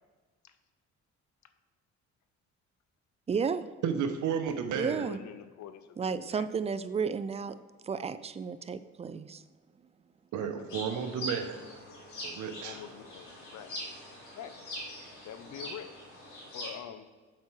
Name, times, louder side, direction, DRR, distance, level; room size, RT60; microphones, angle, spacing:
voice 1, 3.3-3.7 4.7-5.2 6.0-7.6 7.8-9.4, right 6 dB, 20° right, 13 dB, 0.3 m, -32 dB
voice 2, 3.8-5.1 10.3-11.7 12.2-12.8, right 7 dB, 80° right, 7 dB, 0.9 m, -32 dB
voice 3, 4.7-6.5 10.4-11.0 12.6-13.7 14.3-14.5 15.2-15.9 16.5-17.1, left 9 dB, 70° left, 10 dB, 0.7 m, -46 dB
sound 1, 10.7-16.7, equal, 85° left, 1.9 m, -43 dB
7.4 x 4.4 x 4.5 m, 1.4 s
cardioid pair, 90°, 30 cm